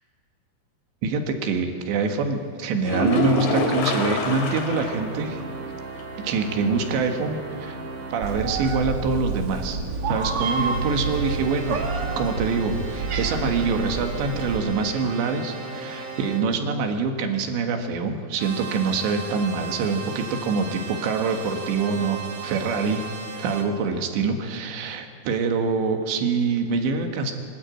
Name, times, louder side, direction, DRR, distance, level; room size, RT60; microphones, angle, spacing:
voice 1, 1.0-5.4 6.2-7.8 8.1-11.8 12.2-23.0 23.3-27.3, right 4 dB, 90° right, 4 dB, 3.9 m, -25 dB
sound 1, 2.8-5.1 5.4-5.5 6.0-6.1 9.8-9.9, left 1 dB, 85° left, 4.7 m, -25 dB
sound 2, 4.2-8.4 10.4-16.4 18.4-23.6, right 4 dB, 35° right, 2.0 m, -37 dB
Meow, 8.2-14.6, right 4 dB, 55° right, 1.6 m, -29 dB
24.5 x 12.5 x 9.1 m, 2.1 s
omnidirectional pair, 4.9 m